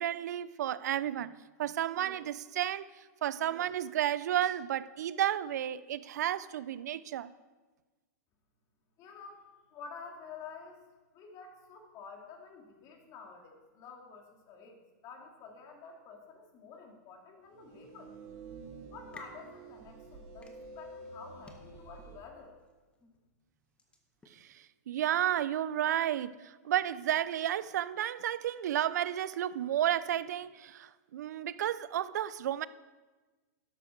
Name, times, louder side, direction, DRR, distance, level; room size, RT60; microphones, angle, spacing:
voice 1, 0.0-1.3 1.6-7.3 24.3-32.7, right 11 dB, 70° right, 0.6 m, -32 dB
voice 2, 9.0-10.8 11.1-18.1 18.9-22.6, left 5 dB, 40° left, 2.8 m, -50 dB
sound 1, 17.5-22.2, right 3 dB, 50° right, 2.0 m, -49 dB
sound 2, 18.9-24.5, left 3 dB, 10° left, 1.6 m, -59 dB
13.0 x 11.5 x 4.6 m
hypercardioid pair, 125°, 9 cm